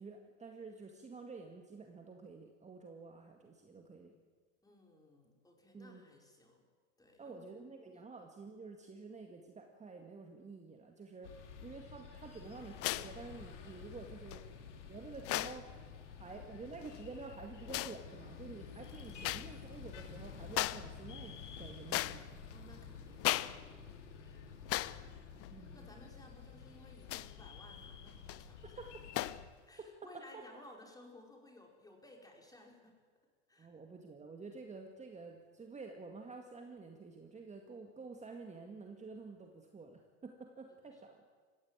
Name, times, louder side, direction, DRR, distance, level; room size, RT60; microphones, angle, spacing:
voice 1, 0.0-4.2 5.7-6.0 7.2-14.4 14.9-15.7 16.2-22.3 25.5-25.9 28.6-29.0 29.8-29.9 30.1-30.4 33.6-41.2, right 4 dB, 20° right, 3 dB, 2.0 m, -50 dB
voice 2, 4.6-6.7 7.0-7.5 22.5-23.8 24.2-24.6 25.3-28.8 29.7-33.0 33.5-33.7, left 1 dB, 10° left, 1 dB, 4.9 m, -58 dB
sound 1, 11.2-29.4, left 6 dB, 90° left, 2.8 m, -51 dB
sound 2, 12.8-13.2 14.3-14.4 15.2-15.6 16.7-17.0 17.7-18.0 19.2-19.5 19.9-20.0 20.5-20.9 21.3-22.5 23.2-23.6 23.9-24.0 24.7-25.0 25.4-25.5 27.0-27.4 28.1-28.4 29.1-29.4, left 16 dB, 40° left, 0.7 m, -37 dB
20.5 x 16.0 x 9.1 m, 1.5 s
hypercardioid pair, 95°, 35 cm